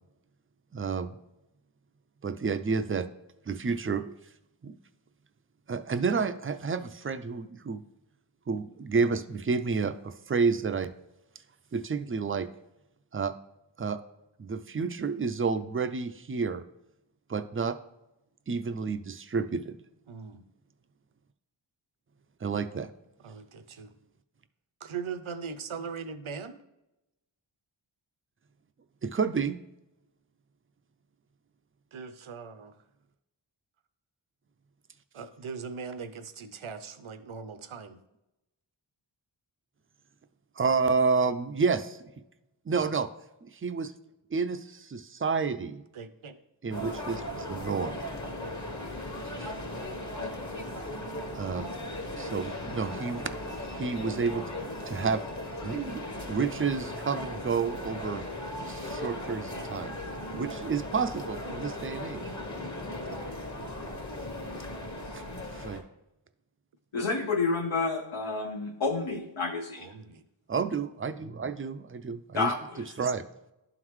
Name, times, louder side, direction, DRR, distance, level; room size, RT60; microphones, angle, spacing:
voice 1, 0.7-1.2 2.2-3.1 3.5-4.1 4.6-4.7 5.7-7.8 8.5-10.9 11.7-12.5 13.1-13.3 13.8-14.0 14.4-16.6 17.3-17.8 18.5-19.8 22.4-22.9 29.0-29.6 40.6-42.0 42.7-43.1 43.4-43.9 44.3-45.8 46.6-48.0 49.4-49.5 51.3-51.7 52.2-53.3 53.7-54.4 54.9-55.2 55.6-58.2 58.7-59.9 60.3-62.2 65.1-65.8 70.5-72.5 73.0-73.2, right 5 dB, 25° right, 10 dB, 0.4 m, -30 dB
voice 2, 20.1-20.4 23.2-23.9 24.8-26.6 31.9-32.8 35.1-38.0 42.8-42.9 45.9-46.4 48.4-48.8 63.6-63.8 69.8-70.2, right 5 dB, 75° right, 10 dB, 0.7 m, -40 dB
sound 1, 46.7-65.8, left 1 dB, 35° left, 1.1 m, -37 dB
voice 3, 66.9-69.9 72.3-72.9, left 3 dB, 70° left, 1 dB, 0.8 m, -30 dB
11.5 x 3.8 x 3.1 m, 0.90 s
wide cardioid pair, 40°, 50 cm